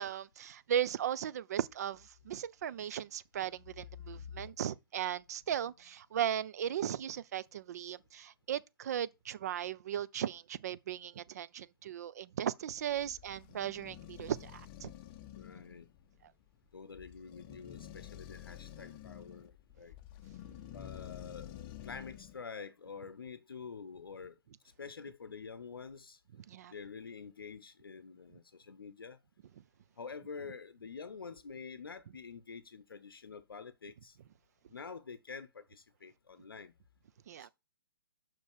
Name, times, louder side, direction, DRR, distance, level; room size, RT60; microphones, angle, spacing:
voice 1, 0.0-14.9 26.5-26.7 37.3-37.5, right 10 dB, 45° right, 0.5 m, -37 dB
sound 1, 12.7-22.4, left 12 dB, 25° left, 0.7 m, -50 dB
voice 2, 15.3-15.9 16.7-19.9 20.7-21.5 21.8-24.4 24.8-26.2 26.7-29.2 30.0-34.2 34.7-36.7 37.4-37.5, left 5 dB, 70° left, 0.7 m, -47 dB
6.0 x 5.2 x 6.5 m
figure-of-eight pair, 130°, 12 cm